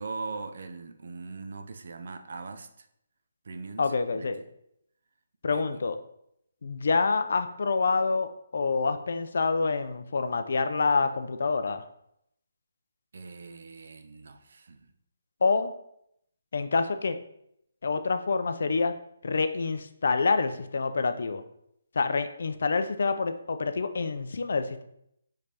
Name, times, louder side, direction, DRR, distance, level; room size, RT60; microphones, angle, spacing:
voice 1, 0.0-2.9 3.4-4.4 5.5-5.8 13.1-14.9, right 4 dB, 60° right, 0.4 m, -41 dB
voice 2, 3.8-4.4 5.4-6.0 6.6-11.8 15.4-15.7 16.5-17.2 17.8-18.9 19.2-21.4 22.0-24.8, left 4 dB, 65° left, 0.4 m, -27 dB
5.0 x 3.3 x 2.8 m
hypercardioid pair, 170°, 0 cm